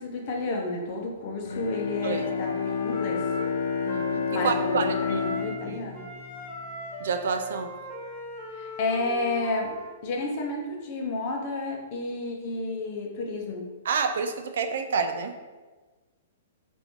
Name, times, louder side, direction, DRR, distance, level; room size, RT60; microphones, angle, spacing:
voice 1, 0.0-3.3 4.3-6.0 8.6-9.7 10.0-13.7, left 3 dB, 40° left, 0 dB, 0.7 m, -31 dB
Bowed string instrument, 1.4-7.0, left 6 dB, 80° left, 0.4 m, -30 dB
Wind instrument woodwind instrument, 2.0-5.7 5.9-9.9, equal, 5° right, 0.8 m, -39 dB
voice 2, 3.9-5.2 5.7-5.8 7.0-7.7 13.9-15.4, right 5 dB, 70° right, 6 dB, 0.3 m, -28 dB
2.8 x 2.6 x 3.5 m, 1.3 s
hypercardioid pair, 155°, 0 cm